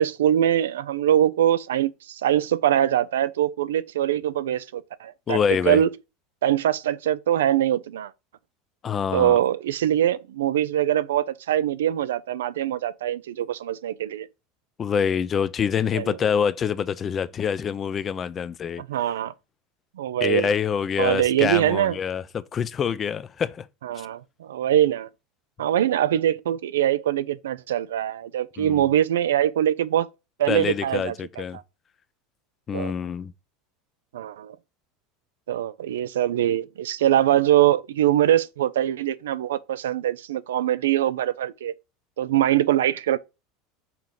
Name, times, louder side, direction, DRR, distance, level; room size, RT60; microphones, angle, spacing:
voice 1, 0.0-5.4 5.7-5.9 6.4-8.1 9.1-14.3 15.9-16.2 18.9-19.3 20.0-20.5 21.0-22.0 23.8-25.1 25.6-30.1 30.4-31.4 32.7-32.9 34.1-34.6 35.5-41.7 42.2-43.2, right 11 dB, 90° right, 0.4 m, -23 dB
voice 2, 5.3-5.8 8.8-9.4 14.8-18.8 20.2-23.7 24.0-24.1 28.6-28.9 30.5-31.6 32.7-33.3, left 7 dB, 30° left, 0.5 m, -26 dB
5.9 x 3.8 x 4.6 m
supercardioid pair, 105°, 0 cm